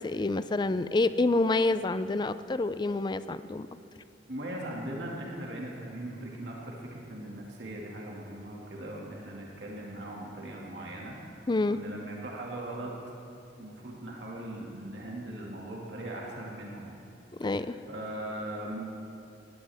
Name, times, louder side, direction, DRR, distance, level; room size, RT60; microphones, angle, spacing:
voice 1, 0.0-3.7 11.5-11.8 17.4-17.8, left 2 dB, 25° left, 13 dB, 0.4 m, -27 dB
voice 2, 4.3-12.9 13.6-17.0 17.4-18.8, right 1 dB, 80° right, -3 dB, 2.2 m, -40 dB
20.5 x 15.5 x 3.5 m, 2.6 s
head